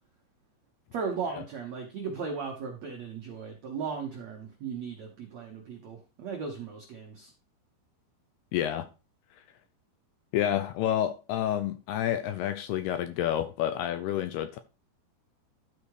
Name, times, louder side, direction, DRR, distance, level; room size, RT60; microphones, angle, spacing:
voice 1, 0.9-7.3, right 5 dB, 75° right, 1.6 m, -36 dB
voice 2, 8.5-8.9 10.3-14.6, left 11 dB, 80° left, 2.4 m, -29 dB
12.5 x 4.7 x 4.9 m
omnidirectional pair, 5.2 m